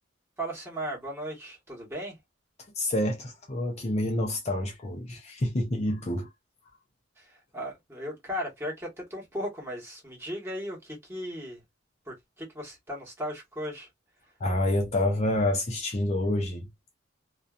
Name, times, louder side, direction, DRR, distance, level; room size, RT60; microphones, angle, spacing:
voice 1, 0.4-2.2 7.2-11.6 12.1-13.9, equal, 15° right, 1.2 m, -36 dB
voice 2, 2.8-6.3 14.4-16.7, left 1 dB, 35° left, 0.6 m, -28 dB
2.6 x 2.2 x 2.3 m
head